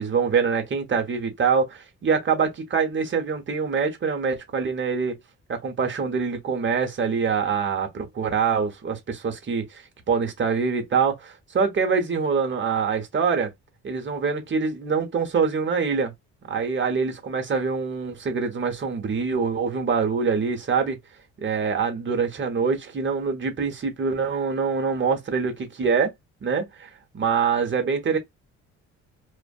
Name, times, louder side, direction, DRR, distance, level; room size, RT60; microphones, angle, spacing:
voice 1, 0.0-5.2 5.5-13.5 13.8-16.1 16.5-21.0 21.4-26.1 26.4-28.2, right 5 dB, 40° right, 0.9 m, -25 dB
2.5 x 2.4 x 2.3 m
cardioid pair, 90°, 30 cm